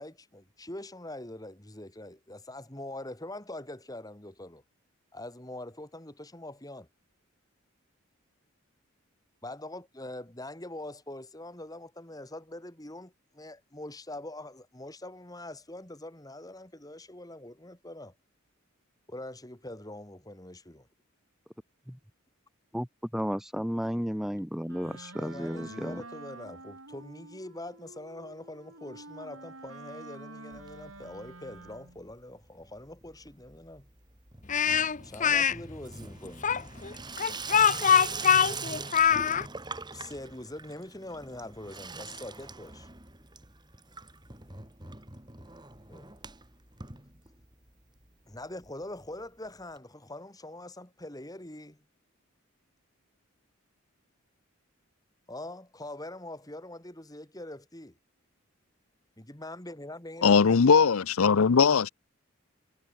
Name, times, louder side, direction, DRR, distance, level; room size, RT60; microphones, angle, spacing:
voice 1, 0.0-4.6 5.1-6.9 9.4-18.1 19.1-20.9 24.8-33.9 35.0-36.5 39.9-42.9 45.9-46.1 48.3-51.8 55.3-58.0 59.2-60.8, left 1 dB, 15° left, 3.0 m, -43 dB
voice 2, 23.1-26.0, equal, ahead, 2.2 m, -33 dB
Wind instrument woodwind instrument, 24.7-32.1, right 2 dB, 75° right, 7.8 m, -48 dB
Water tap faucet / Sink (filling or washing), 30.5-31.3 31.6-32.1 32.4-47.7 48.0-48.1 48.3-48.4 48.6-48.7 49.8-49.9, right 4 dB, 20° right, 3.9 m, -42 dB
Speech, 34.5-35.5 36.4-39.4, left 7 dB, 35° left, 0.8 m, -23 dB
voice 3, 60.2-61.9, left 5 dB, 80° left, 0.6 m, -20 dB
head